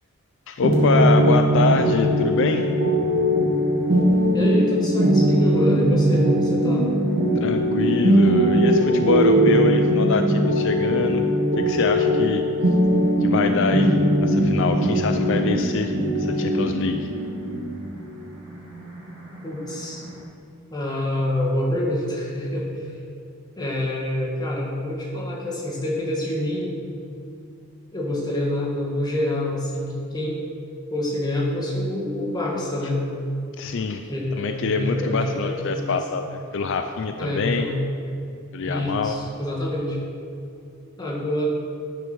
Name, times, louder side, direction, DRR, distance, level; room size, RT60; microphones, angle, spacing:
voice 1, 0.5-2.7 7.4-11.2 11.6-12.4 13.2-17.1 33.6-34.1 34.4-37.7 38.5-39.2, left 4 dB, 60° left, 6 dB, 0.4 m, -25 dB
sound 1, 0.6-20.2, equal, 70° right, 2.1 m, -20 dB
voice 2, 4.3-6.9 19.4-20.0 20.7-22.8 23.6-26.8 27.9-30.4 30.9-33.0 34.1-36.2 37.2-37.8 38.6-40.0 41.0-41.4, left 1 dB, 20° left, -4 dB, 1.8 m, -26 dB
9.5 x 6.6 x 6.1 m, 2.6 s
head